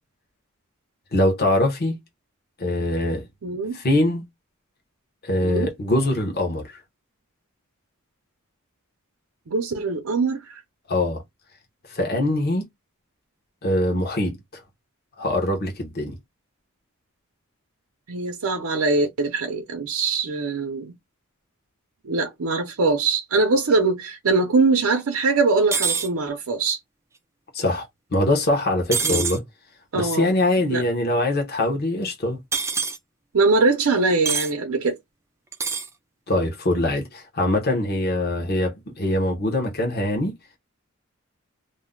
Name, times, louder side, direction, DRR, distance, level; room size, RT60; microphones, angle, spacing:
voice 1, 1.1-2.0 2.6-3.3 3.7-4.2 5.2-6.8 10.9-11.2 11.9-12.6 13.6-14.4 15.2-16.2 27.5-27.9 28.1-29.4 29.9-32.4 36.3-40.3, left 1 dB, 45° left, 0.9 m, -23 dB
voice 2, 3.4-3.8 5.4-5.7 9.5-10.6 18.1-20.9 22.0-26.8 29.0-29.2 29.9-30.3 30.7-30.8 33.3-35.0, right 3 dB, 80° right, 0.6 m, -22 dB
sound 1, 25.7-26.1 28.9-29.4 32.5-33.0 34.3-34.5 35.5-35.9, right 5 dB, 15° right, 0.3 m, -24 dB
2.6 x 2.1 x 3.6 m
head